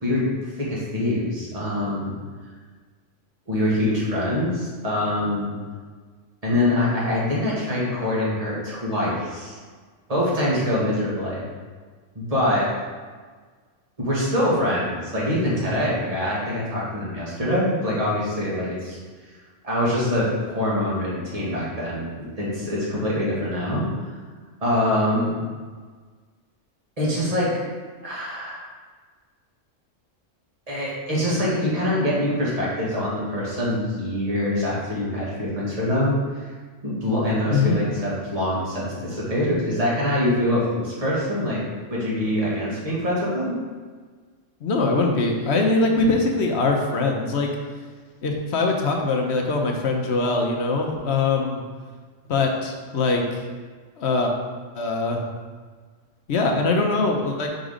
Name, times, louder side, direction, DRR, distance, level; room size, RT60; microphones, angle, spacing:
voice 1, 0.6-2.2 3.5-5.6 6.4-9.6 10.1-11.4 12.2-12.7 14.0-19.0 19.6-22.1 22.4-23.9 24.6-25.4 27.0-27.5 28.0-28.7 30.7-36.5 36.8-41.6 41.9-43.6, left 1 dB, 30° right, -7 dB, 1.7 m, -24 dB
voice 2, 44.6-47.5 48.2-51.6 52.3-53.4 54.0-54.3 54.7-55.2 56.3-57.5, left 3 dB, 60° left, 2 dB, 0.9 m, -22 dB
5.0 x 4.0 x 5.0 m, 1.5 s
omnidirectional pair, 1.3 m